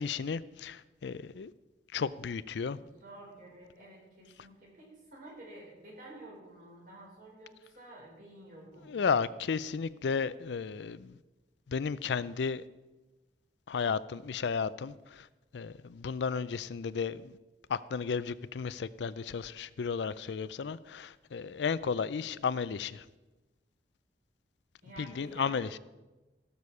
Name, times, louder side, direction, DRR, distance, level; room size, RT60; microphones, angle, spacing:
voice 1, 0.0-1.5 1.9-2.8 8.9-11.1 11.7-12.6 13.7-15.2 15.5-17.3 17.7-23.0 25.2-25.7, left 5 dB, 80° left, 17 dB, 0.4 m, -33 dB
voice 2, 3.0-9.3 24.8-25.8, right 1 dB, 50° right, -3 dB, 4.7 m, -50 dB
17.0 x 6.9 x 4.8 m, 1.1 s
head